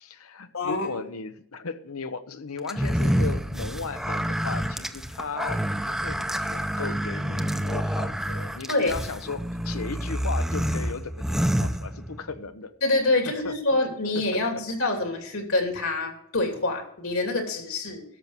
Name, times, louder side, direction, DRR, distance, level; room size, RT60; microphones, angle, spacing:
voice 1, 0.0-12.7 13.3-13.5 14.1-14.4, left 4 dB, 90° left, 11 dB, 0.9 m, -36 dB
voice 2, 0.5-0.9 8.7-8.9 12.8-18.0, left 2 dB, 75° left, 3 dB, 2.8 m, -26 dB
sound 1, 2.7-12.4, equal, ahead, 0.6 m, -28 dB
13.0 x 6.1 x 6.8 m, 0.71 s
head